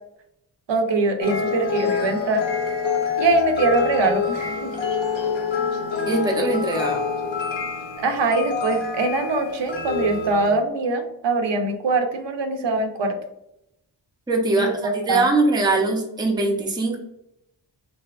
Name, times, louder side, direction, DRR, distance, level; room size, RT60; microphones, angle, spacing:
voice 1, 0.7-2.4 3.2-4.7 8.0-13.1 14.6-15.3, right 2 dB, 70° right, 5 dB, 0.6 m, -22 dB
sound 1, 1.2-10.5, left 5 dB, 90° left, 0.8 m, -26 dB
voice 2, 6.1-7.0 14.3-17.0, right 2 dB, 10° right, 1 dB, 0.5 m, -22 dB
3.4 x 2.7 x 2.3 m, 0.82 s
wide cardioid pair, 120°, 45 cm